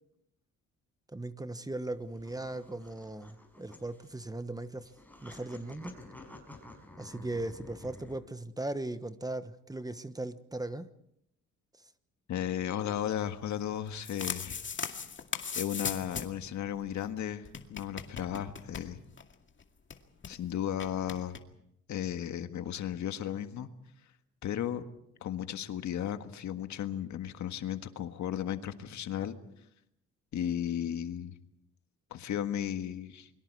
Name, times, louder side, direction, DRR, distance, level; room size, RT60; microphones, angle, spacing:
voice 1, 1.1-4.9 5.2-5.9 7.0-10.9, right 2 dB, 10° right, 1.2 m, -38 dB
sound 1, 1.9-8.2, left 1 dB, 5° left, 5.4 m, -51 dB
voice 2, 12.3-14.6 15.6-19.0 20.3-21.4 21.9-23.7 24.4-24.8 25.2-29.3 30.3-31.3 32.1-33.3, left 10 dB, 70° left, 1.7 m, -35 dB
sound 2, 13.8-16.5 16.7-16.8 17.0-17.1 17.5-19.3 19.6-19.7 19.9-20.4 20.8-21.4, left 6 dB, 40° left, 2.3 m, -38 dB
29.0 x 23.0 x 4.7 m
cardioid pair, 90°, 30 cm